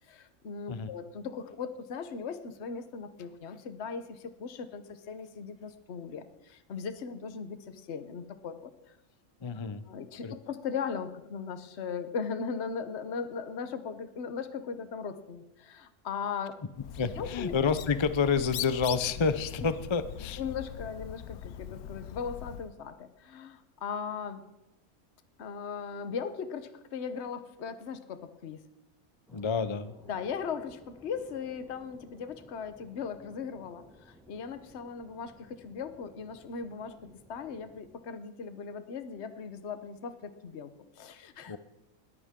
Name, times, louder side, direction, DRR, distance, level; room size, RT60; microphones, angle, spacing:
voice 1, 0.1-8.7 9.9-16.6 17.2-17.5 20.4-24.4 25.4-28.7 30.1-41.6, left 6 dB, 50° left, 10 dB, 1.3 m, -38 dB
voice 2, 9.4-9.8 10.2-10.3 17.0-20.4 29.3-29.9 41.5-41.6, left 5 dB, 35° left, 12 dB, 0.4 m, -29 dB
Bird, 16.7-22.7, left 11 dB, 90° left, 1.1 m, -41 dB
sound 1, 29.3-37.9, equal, ahead, 7.2 m, -58 dB
20.5 x 14.0 x 3.7 m, 0.97 s
omnidirectional pair, 1.5 m